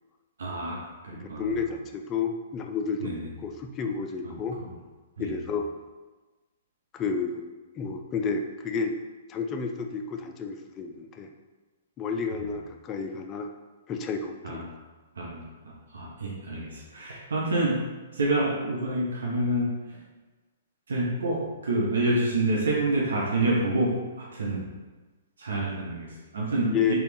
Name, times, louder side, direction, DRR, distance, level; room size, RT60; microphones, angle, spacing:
voice 1, 0.4-1.5 3.0-3.3 4.2-4.3 5.2-5.3 14.4-14.6 15.2-17.8 18.1-19.7 20.9-24.7 25.4-26.9, right 2 dB, 70° right, -3 dB, 0.7 m, -28 dB
voice 2, 1.1-4.6 5.2-5.7 6.9-7.5 7.8-8.9 9.3-11.3 12.0-13.5 13.9-14.7 26.7-26.9, left 5 dB, 25° left, 5 dB, 0.4 m, -31 dB
4.1 x 2.3 x 3.4 m, 1.2 s
figure-of-eight pair, 115°, 0 cm